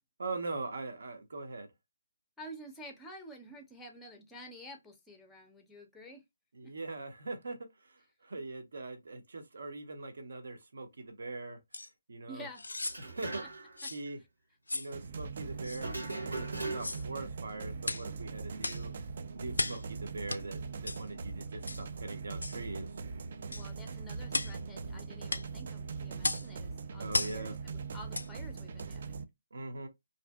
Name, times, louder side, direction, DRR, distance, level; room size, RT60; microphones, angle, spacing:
voice 1, 0.2-1.7 6.5-11.6 12.1-12.5 13.0-13.4 13.9-14.2 14.7-15.9 16.2-18.9 19.3-22.9 27.0-27.6 29.5-29.9, right 3 dB, 65° right, 0.7 m, -41 dB
voice 2, 2.4-6.2 6.6-6.7 12.3-12.6 23.5-29.3, equal, 5° left, 0.5 m, -50 dB
sound 1, 11.7-11.9 12.5-13.0 13.8-14.0 14.7-14.9 15.6-15.8 16.7-17.1 17.8-18.1 18.6-18.9 19.5-19.8 20.3-20.4 20.9-21.0 21.7-21.8 22.4-22.6 23.5-23.7 24.3-24.6 25.3-25.5 26.2-26.5 27.1-27.4 28.1-28.3 28.8-28.9, left 2 dB, 85° left, 0.3 m, -35 dB
sound 2, 12.9-13.8 14.0-14.1 15.8-17.1, right 2 dB, 85° right, 1.3 m, -39 dB
sound 3, 14.9-29.2, right 5 dB, 50° right, 0.3 m, -41 dB
2.6 x 2.5 x 2.2 m
figure-of-eight pair, 150°, 0 cm